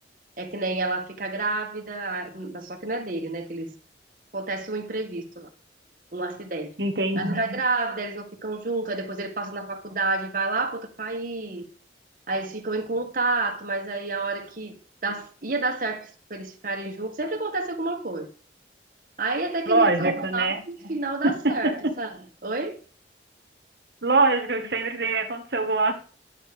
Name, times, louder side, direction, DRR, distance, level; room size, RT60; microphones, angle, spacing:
voice 1, 0.4-3.7 4.3-5.5 6.1-6.7 7.1-11.6 12.3-18.3 19.2-22.8, right 3 dB, 50° right, 1.6 m, -29 dB
voice 2, 6.8-7.4 19.7-20.6 21.2-21.7 24.0-25.9, right 3 dB, 70° right, 1.7 m, -23 dB
10.5 x 8.1 x 5.1 m
head